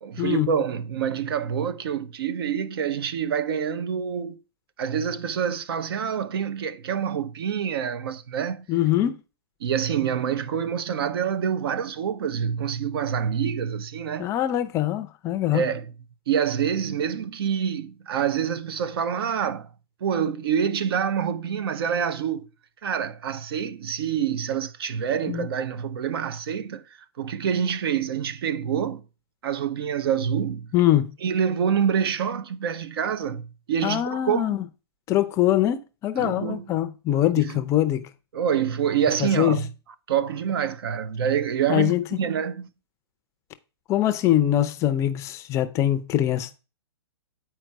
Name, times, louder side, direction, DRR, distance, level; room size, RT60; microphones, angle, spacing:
voice 1, 0.0-4.4 4.8-8.7 9.6-14.3 15.5-15.9 16.3-19.7 20.0-22.5 22.8-26.9 27.2-29.0 29.4-30.7 31.2-34.6 36.2-36.6 37.4-37.6 38.3-39.7 40.1-42.7, right 8 dB, 60° right, 0.9 m, -26 dB
voice 2, 8.7-9.2 14.2-15.6 25.3-25.5 30.7-31.1 33.8-34.6 35.1-38.1 39.2-39.6 41.7-42.2 43.9-46.6, left 13 dB, 20° left, 0.5 m, -23 dB
9.1 x 4.5 x 4.6 m
hypercardioid pair, 140°, 14 cm